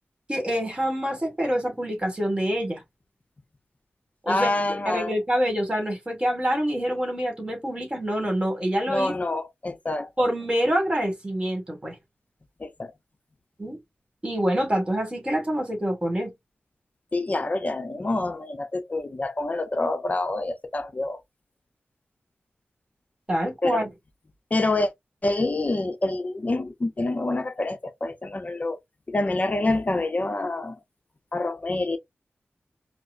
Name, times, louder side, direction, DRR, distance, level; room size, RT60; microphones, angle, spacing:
voice 1, 0.3-2.8 4.2-4.5 4.9-9.1 10.2-12.0 13.6-13.8 14.2-16.3 23.3-23.9, equal, 25° right, 2.0 m, -26 dB
voice 2, 4.3-5.1 8.9-10.1 12.6-12.9 17.1-21.2 23.6-23.8 24.5-24.9 25.2-28.8 29.1-30.8 31.3-32.0, left 2 dB, 35° left, 0.7 m, -27 dB
4.6 x 2.1 x 2.6 m
wide cardioid pair, 95°, 4 cm